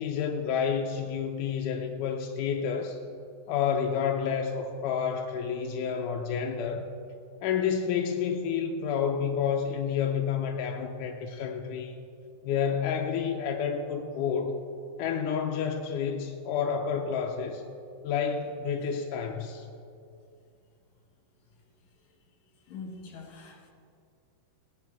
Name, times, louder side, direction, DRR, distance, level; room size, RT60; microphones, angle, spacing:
voice 1, 0.0-3.0 3.5-6.8 7.4-11.9 12.4-14.6 15.0-17.6 18.0-19.7, left 7 dB, 80° left, 2 dB, 1.9 m, -29 dB
voice 2, 22.7-23.7, left 4 dB, 55° left, -1 dB, 2.9 m, -43 dB
18.0 x 10.5 x 3.6 m, 2.5 s
omnidirectional pair, 4.3 m